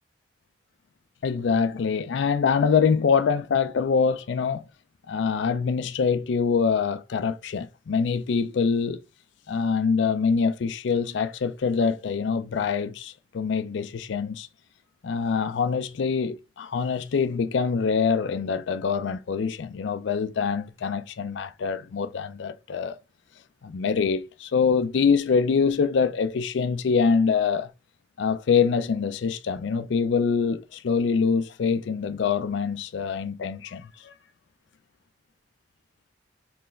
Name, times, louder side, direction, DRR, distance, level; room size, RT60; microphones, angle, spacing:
voice 1, 1.2-4.6 5.1-9.0 9.5-14.5 15.0-23.0 23.6-27.7 28.2-34.1, left 5 dB, 75° left, 0.4 m, -24 dB
4.6 x 3.2 x 3.0 m
head